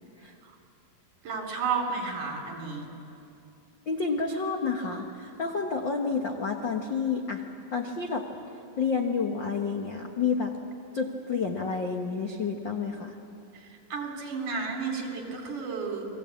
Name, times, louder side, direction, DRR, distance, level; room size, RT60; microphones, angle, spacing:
voice 1, 1.2-2.9 13.9-16.1, right 5 dB, 55° right, 1 dB, 5.1 m, -32 dB
voice 2, 3.9-7.4 7.7-8.3 8.8-10.5 10.9-13.1, left 5 dB, 80° left, 2 dB, 1.0 m, -29 dB
29.5 x 21.5 x 8.5 m, 2.6 s
omnidirectional pair, 4.4 m